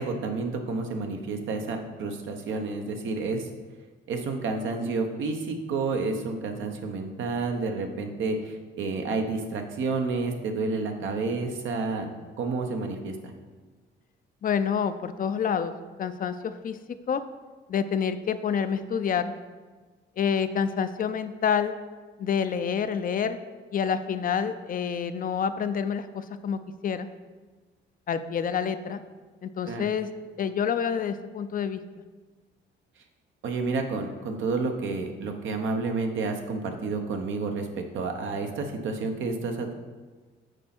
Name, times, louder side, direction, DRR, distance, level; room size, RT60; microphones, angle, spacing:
voice 1, 0.0-3.5 4.1-12.1 12.4-13.1 29.7-29.8 33.4-39.7, right 3 dB, 75° right, 4 dB, 1.0 m, -30 dB
voice 2, 14.4-15.7 16.0-16.8 17.1-17.2 17.7-19.3 20.2-21.8 22.2-23.4 23.7-27.1 28.1-29.0 29.4-30.1 30.4-31.8, left 7 dB, 45° left, 11 dB, 0.5 m, -28 dB
6.4 x 4.3 x 5.9 m, 1.4 s
cardioid pair, 90°, 20 cm